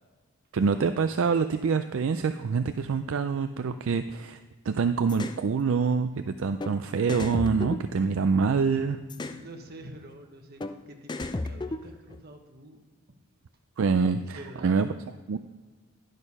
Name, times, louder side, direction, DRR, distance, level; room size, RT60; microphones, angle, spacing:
voice 1, 0.5-4.4 4.6-9.0 13.8-14.9 15.3-15.4, right 5 dB, 65° right, 9 dB, 0.4 m, -26 dB
sound 1, 5.1-5.4 6.6-6.7 7.1-8.5 9.1-9.4 10.6-10.7 11.1-12.2, left 2 dB, 20° left, 0.3 m, -34 dB
voice 2, 9.2-12.8 13.1-13.2 14.3-15.0, right 1 dB, 45° right, 4 dB, 1.1 m, -47 dB
10.5 x 6.5 x 5.4 m, 1.4 s
head